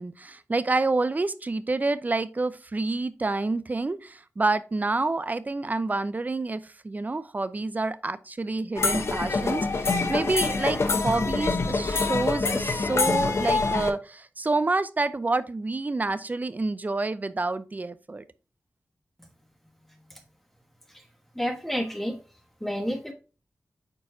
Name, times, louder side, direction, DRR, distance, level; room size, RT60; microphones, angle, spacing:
voice 1, 0.0-18.2, right 3 dB, 35° right, 0.6 m, -28 dB
sound 1, 8.8-13.9, left 3 dB, 60° left, 0.9 m, -25 dB
voice 2, 21.3-22.2 22.6-23.1, equal, 5° left, 1.2 m, -29 dB
8.7 x 4.5 x 2.7 m
cardioid pair, 65°, 5 cm